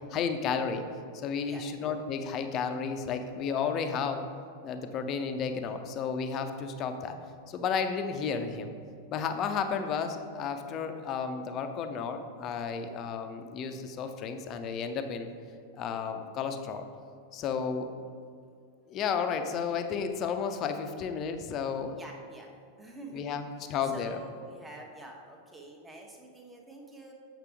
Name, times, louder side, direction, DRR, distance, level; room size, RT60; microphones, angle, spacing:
voice 1, 0.1-0.8 1.1-4.2 4.6-7.2 7.5-8.7 9.1-15.3 15.8-16.9 17.3-17.9 18.9-22.0 23.1-23.4 23.7-24.2, left 6 dB, 35° left, 7 dB, 0.6 m, -32 dB
voice 2, 21.7-22.5 22.8-23.3 23.8-27.1, right 2 dB, 15° right, 1 dB, 1.0 m, -47 dB
8.1 x 5.8 x 3.5 m, 2.3 s
figure-of-eight pair, 90°, 0 cm